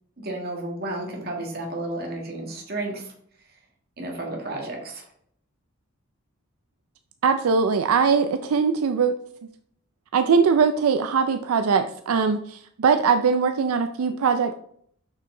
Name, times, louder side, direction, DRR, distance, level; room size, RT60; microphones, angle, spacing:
voice 1, 0.2-3.1 4.0-5.1, right 2 dB, 45° right, 0 dB, 1.8 m, -32 dB
voice 2, 7.2-9.2 10.1-14.5, right 5 dB, 80° right, 8 dB, 0.4 m, -21 dB
6.4 x 5.7 x 3.7 m, 0.66 s
head